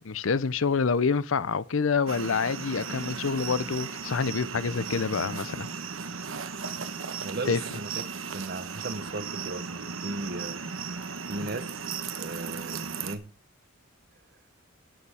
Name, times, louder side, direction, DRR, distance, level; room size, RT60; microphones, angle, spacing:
voice 1, 0.0-5.7 7.5-7.6, left 5 dB, 80° left, 0.6 m, -27 dB
sound 1, 2.1-13.2, right 5 dB, 80° right, 1.2 m, -36 dB
voice 2, 7.2-8.0 8.3-10.6 11.3-13.3, right 2 dB, 50° right, 1.0 m, -37 dB
18.0 x 6.9 x 3.5 m
head